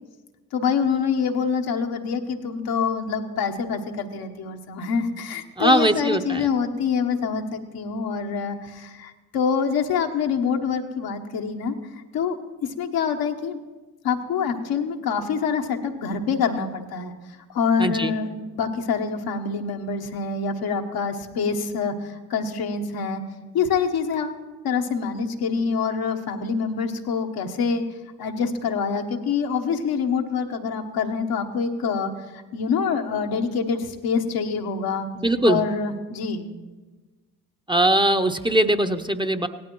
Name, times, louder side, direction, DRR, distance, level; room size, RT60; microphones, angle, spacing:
voice 1, 0.5-11.7 12.1-12.4 12.8-13.6 14.0-17.1 17.5-23.2 23.5-24.4 24.6-27.8 28.2-35.1 35.4-36.5, left 5 dB, 75° left, 4 dB, 1.1 m, -26 dB
voice 2, 5.6-6.5 17.8-18.1 35.2-35.6 37.7-39.5, right 1 dB, 10° right, 7 dB, 0.8 m, -21 dB
17.5 x 12.0 x 3.1 m, 1.3 s
hypercardioid pair, 45°, 37 cm